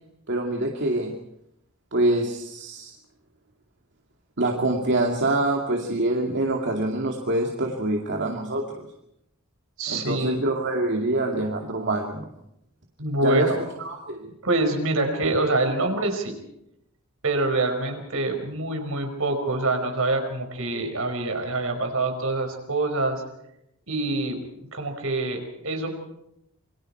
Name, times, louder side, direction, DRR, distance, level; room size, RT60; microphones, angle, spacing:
voice 1, 0.3-1.1 1.9-2.9 4.4-8.9 9.9-12.3 13.2-13.5 13.8-14.3, right 2 dB, 55° right, 1 dB, 2.5 m, -25 dB
voice 2, 9.8-10.4 13.0-13.6 14.4-16.3 17.2-23.2 23.9-24.4 24.7-25.9, right 2 dB, 70° right, 5 dB, 5.4 m, -25 dB
28.0 x 24.0 x 4.5 m, 0.79 s
head